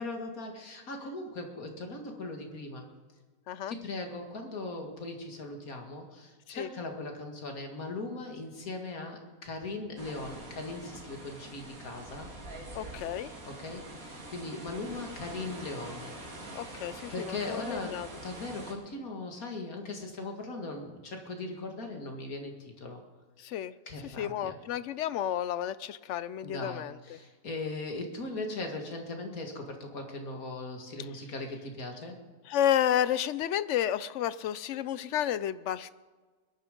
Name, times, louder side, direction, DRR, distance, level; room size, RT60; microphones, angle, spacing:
voice 1, 0.0-2.9 3.7-12.3 13.4-16.1 17.1-23.0 23.9-24.6 26.4-32.2, left 2 dB, 90° left, 3 dB, 2.5 m, -39 dB
sound 1, 10.0-18.7, right 1 dB, 75° right, 2.7 m, -45 dB
voice 2, 12.7-13.3 16.5-18.1 23.4-23.7 24.2-27.2 32.5-35.9, left 10 dB, 65° left, 16 dB, 0.8 m, -31 dB
21.0 x 11.0 x 5.2 m, 1.4 s
omnidirectional pair, 1.5 m